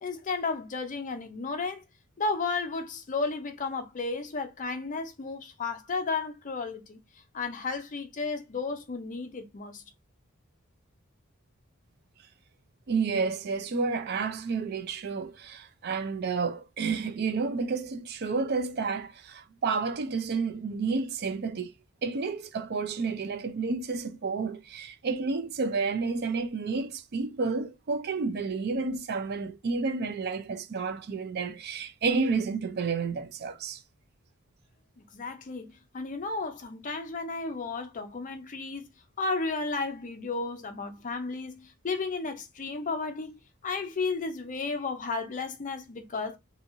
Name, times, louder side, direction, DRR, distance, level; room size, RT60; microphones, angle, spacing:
voice 1, 0.0-1.8 2.2-7.0 7.3-9.8 35.1-38.9 39.2-46.4, left 4 dB, 40° left, 0.5 m, -33 dB
voice 2, 12.9-21.7 22.0-33.8, right 4 dB, 50° right, 0.4 m, -30 dB
2.8 x 2.7 x 2.5 m
head